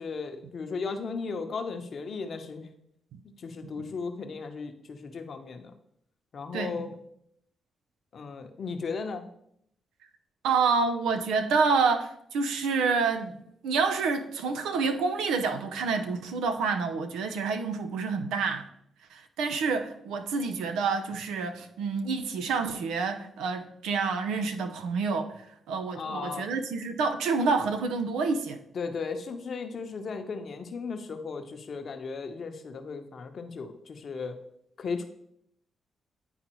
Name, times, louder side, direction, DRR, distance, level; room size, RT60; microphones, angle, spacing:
voice 1, 0.0-2.7 3.2-5.7 6.3-6.9 8.1-9.3 25.9-26.5 28.7-34.4 34.8-35.1, left 4 dB, 60° left, 0.8 m, -36 dB
voice 2, 10.4-13.4 13.6-18.7 19.1-25.4 25.7-28.6, right 4 dB, 90° right, 0.6 m, -28 dB
10.0 x 3.9 x 3.0 m
supercardioid pair, 60°, 0 cm